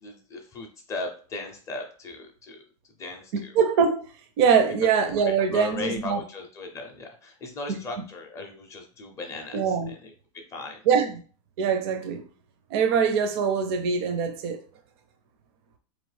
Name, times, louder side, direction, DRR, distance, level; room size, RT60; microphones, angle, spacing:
voice 1, 0.0-2.6 3.0-3.5 5.0-5.1 5.5-9.6 9.9-10.1 10.5-10.8, left 3 dB, 15° left, 0.5 m, -37 dB
voice 2, 3.3-4.1 4.4-6.2 7.7-7.8 9.5-9.9 10.8-11.2 11.6-12.2 12.7-14.6, right 6 dB, 45° right, 0.5 m, -23 dB
4.0 x 3.0 x 3.2 m
supercardioid pair, 165°, 18 cm